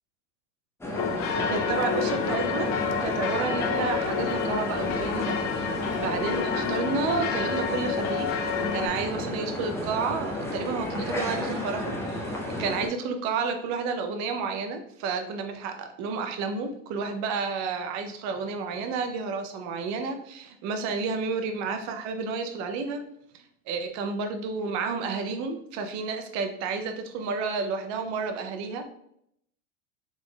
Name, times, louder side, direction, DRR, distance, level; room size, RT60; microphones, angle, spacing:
sound 1, 0.8-12.9, left 1 dB, 5° left, 0.7 m, -32 dB
sound 2, 1.0-8.9, left 6 dB, 40° left, 0.4 m, -29 dB
voice 1, 1.5-2.7 3.0-5.7 6.0-8.3 8.7-12.3 12.6-23.0 23.3-28.8, right 4 dB, 45° right, 6 dB, 0.7 m, -31 dB
3.8 x 3.5 x 2.3 m, 0.73 s
supercardioid pair, 120°, 38 cm